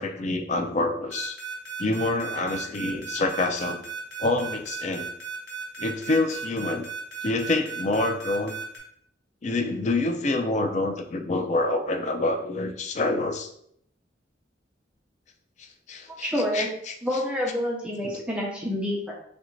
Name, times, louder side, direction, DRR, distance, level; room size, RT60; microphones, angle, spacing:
voice 1, 0.0-1.4 1.8-3.8 4.2-5.1 5.8-6.9 7.2-8.6 9.4-13.5 15.6-16.9 18.0-18.2, left 2 dB, 40° left, 5 dB, 0.4 m, -27 dB
sound 1, 1.1-8.8, right 6 dB, 80° left, 1.0 m, -36 dB
voice 2, 16.2-16.7 17.0-19.1, left 1 dB, 5° right, -3 dB, 0.6 m, -28 dB
3.2 x 2.5 x 3.0 m, 0.68 s
head